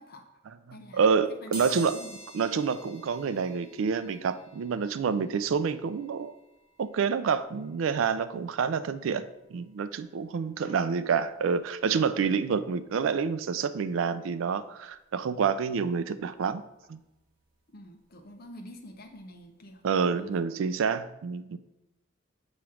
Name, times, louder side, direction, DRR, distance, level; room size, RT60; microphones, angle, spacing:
voice 1, 0.0-2.2 10.6-10.9 17.7-19.8 20.2-20.4 20.9-21.0, equal, 50° left, 4 dB, 0.8 m, -48 dB
voice 2, 0.7-2.0 2.3-6.3 6.8-9.3 9.5-16.6 16.9-17.0 19.8-21.6, right 6 dB, 75° right, 13 dB, 0.4 m, -28 dB
sound 1, 1.5-12.2 12.7-12.8 13.9-14.0 14.3-16.4 16.7-19.4 19.7-19.9 20.2-20.3, right 2 dB, 50° right, 1.6 m, -50 dB
7.1 x 3.0 x 4.8 m, 0.92 s
head